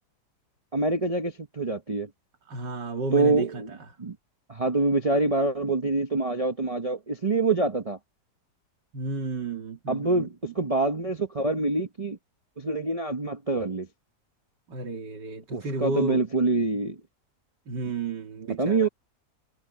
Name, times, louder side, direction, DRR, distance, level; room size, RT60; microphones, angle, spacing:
voice 1, 0.7-2.1 3.1-3.7 4.0-4.2 4.5-8.0 9.9-12.2 12.6-13.9 15.5-17.0 18.6-18.9, right 3 dB, 25° right, 0.8 m, -25 dB
voice 2, 2.5-3.6 8.9-10.5 14.7-16.2 17.7-18.9, right 3 dB, 80° right, 2.9 m, -32 dB
omnidirectional pair, 1.9 m